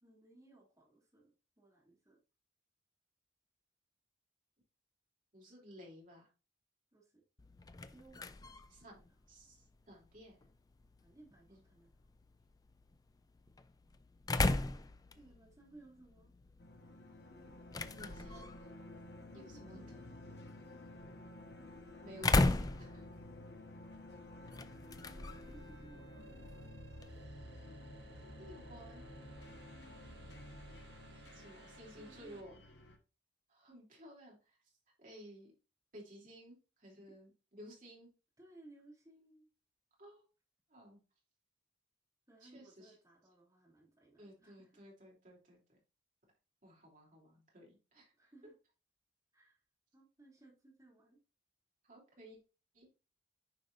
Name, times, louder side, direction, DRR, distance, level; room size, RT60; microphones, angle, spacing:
voice 1, 0.0-2.2 6.9-7.2 7.9-9.0 11.0-11.9 15.1-16.3 19.2-20.4 25.1-26.4 31.6-32.8 38.4-39.5 42.3-44.8 48.2-48.5 49.3-49.6 49.9-51.2, right 2 dB, 15° right, -3 dB, 2.9 m, -61 dB
voice 2, 5.3-6.3 8.7-10.5 11.5-11.6 15.1-15.2 17.9-18.6 19.3-19.8 22.0-23.1 28.2-29.0 31.3-32.6 33.5-34.6 35.0-35.5 35.9-38.1 40.0-40.3 40.7-41.0 42.4-42.9 44.2-45.8 46.6-48.3 51.8-52.4 52.7-52.9, equal, 40° right, -2 dB, 3.2 m, -56 dB
sound 1, 7.4-27.2, left 2 dB, 20° left, 0.4 m, -39 dB
sound 2, 16.6-33.0, left 1 dB, 60° left, 1.3 m, -52 dB
sound 3, 25.3-32.4, right 2 dB, 60° right, 1.2 m, -60 dB
9.3 x 5.1 x 2.6 m, 0.31 s
head